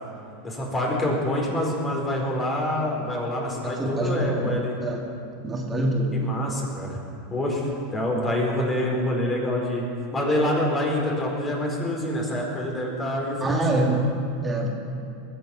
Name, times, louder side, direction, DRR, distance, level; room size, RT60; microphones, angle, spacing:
voice 1, 0.4-4.7 6.1-7.0 7.3-9.9 10.1-14.0, left 1 dB, 25° left, -1 dB, 4.4 m, -26 dB
voice 2, 3.8-4.5 4.8-5.1 5.4-6.2 13.4-14.1 14.4-14.7, right 1 dB, 20° right, -1 dB, 2.2 m, -25 dB
20.5 x 8.1 x 6.2 m, 2.6 s
hypercardioid pair, 95°, 0 cm